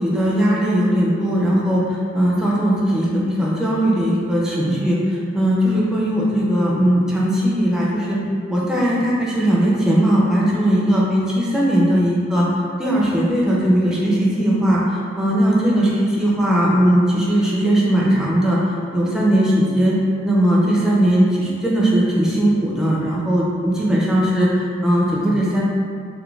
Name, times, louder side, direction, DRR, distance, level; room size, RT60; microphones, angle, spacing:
voice 1, 0.0-1.8 2.1-5.0 5.3-8.2 8.5-12.5 12.8-14.8 15.2-18.6 18.9-20.0 20.2-24.5 24.8-25.6, right 1 dB, 5° right, -6 dB, 0.4 m, -18 dB
2.3 x 2.2 x 3.1 m, 2.2 s
head